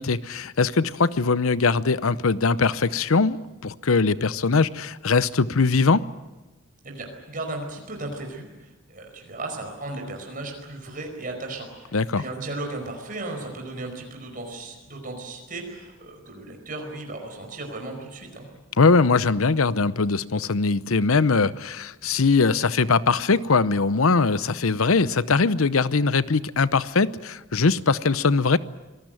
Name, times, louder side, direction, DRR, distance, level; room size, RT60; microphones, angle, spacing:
voice 1, 0.0-3.4 3.6-6.1 11.9-12.2 18.8-28.6, left 4 dB, 85° left, 16 dB, 0.8 m, -21 dB
voice 2, 6.8-18.4, right 2 dB, 40° right, 2 dB, 5.0 m, -36 dB
25.5 x 18.5 x 9.1 m, 1.1 s
head